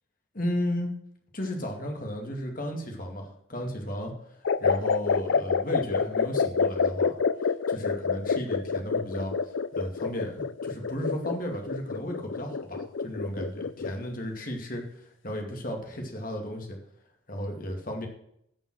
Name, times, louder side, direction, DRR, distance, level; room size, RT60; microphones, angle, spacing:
voice 1, 0.3-0.9 1.3-4.1 4.6-7.1 7.4-16.8 17.3-18.1, equal, 45° left, 2 dB, 2.4 m, -34 dB
sound 1, 4.5-14.1, left 5 dB, 75° left, 0.5 m, -27 dB
16.0 x 5.6 x 6.3 m, 0.73 s
head